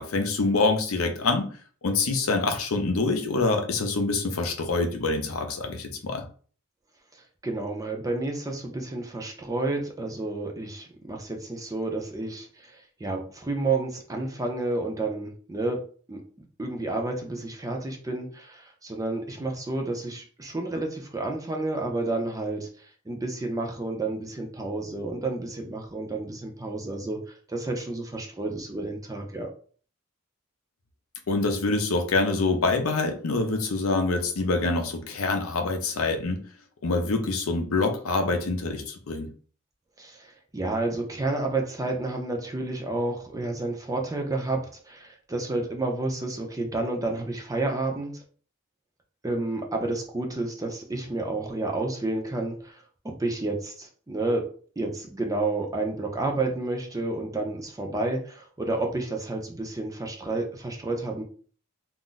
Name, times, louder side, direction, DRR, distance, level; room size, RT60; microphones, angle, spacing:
voice 1, 0.0-1.5 1.8-6.2 31.3-36.4 36.8-39.3, left 3 dB, 80° left, 6 dB, 0.6 m, -25 dB
voice 2, 7.4-16.2 16.6-29.5 40.0-48.2 49.2-54.5 54.8-61.2, right 2 dB, 15° right, 3 dB, 0.5 m, -30 dB
2.5 x 2.1 x 3.8 m, 0.43 s
head